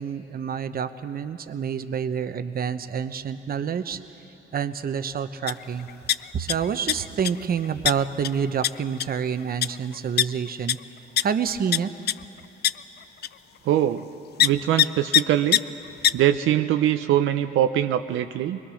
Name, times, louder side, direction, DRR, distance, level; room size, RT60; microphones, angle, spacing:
voice 1, 0.0-4.0 4.5-5.9 6.3-10.8 11.2-11.9, right 7 dB, 50° right, 11 dB, 0.9 m, -28 dB
sound 1, 5.5-5.6 5.9-6.5 6.9-7.3 7.9-8.0 8.2-8.3 8.6-8.7 9.0-9.2 9.6-9.7 10.2-10.3 10.7-10.8 11.2-11.3 11.7-11.8 12.1-12.2 12.6-12.7 13.2-13.3 14.4-14.5 14.8-14.9 15.1-15.2 15.5-15.6 16.0-16.1, left 11 dB, 55° left, 0.4 m, -19 dB
voice 2, 13.6-14.1 14.4-15.6 16.1-18.6, right 11 dB, 85° right, 8 dB, 0.7 m, -22 dB
22.5 x 21.5 x 6.4 m, 2.9 s
cardioid pair, 90°, 20 cm